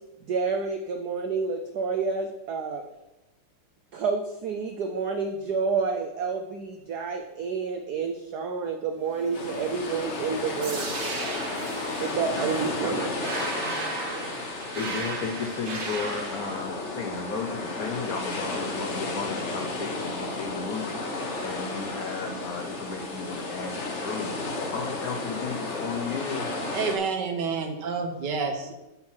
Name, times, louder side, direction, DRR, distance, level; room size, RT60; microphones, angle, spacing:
voice 1, 0.3-2.8 3.9-11.0 12.0-13.1, right 5 dB, 80° right, 4 dB, 0.8 m, -29 dB
sound 1, 8.9-13.7, left 2 dB, 60° left, 2.5 m, -41 dB
sound 2, 9.3-27.0, left 2 dB, 45° left, 1.0 m, -33 dB
sound 3, 10.6-16.6, right 3 dB, 50° right, 0.8 m, -35 dB
voice 2, 14.6-26.5, left 5 dB, 80° left, 3 dB, 0.8 m, -34 dB
voice 3, 26.7-28.7, right 5 dB, 65° right, 5 dB, 1.2 m, -29 dB
7.5 x 5.6 x 4.5 m, 0.97 s
omnidirectional pair, 2.4 m